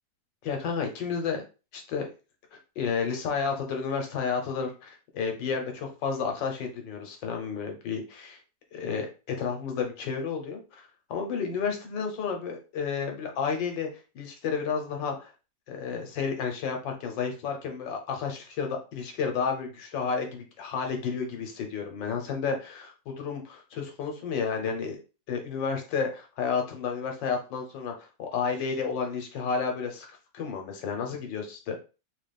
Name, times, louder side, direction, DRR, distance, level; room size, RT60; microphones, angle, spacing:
voice 1, 0.4-1.4 1.7-2.1 2.8-8.4 8.7-10.6 11.1-13.9 14.1-15.3 15.7-25.0 25.3-30.1 30.3-31.7, left 5 dB, 85° left, 3 dB, 1.6 m, -31 dB
3.9 x 2.4 x 3.4 m, 0.32 s
omnidirectional pair, 2.0 m